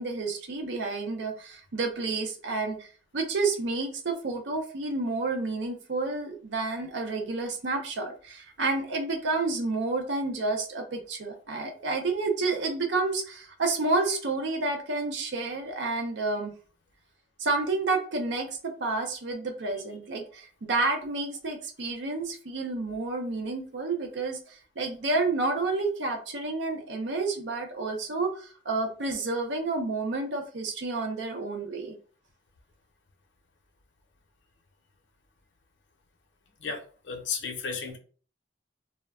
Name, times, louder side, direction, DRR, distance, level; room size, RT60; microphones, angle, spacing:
voice 1, 0.0-16.5 17.4-32.0, right 3 dB, 75° right, 3 dB, 0.5 m, -30 dB
voice 2, 36.6-38.0, left 5 dB, 80° left, 3 dB, 0.6 m, -34 dB
2.2 x 2.1 x 3.5 m, 0.40 s
head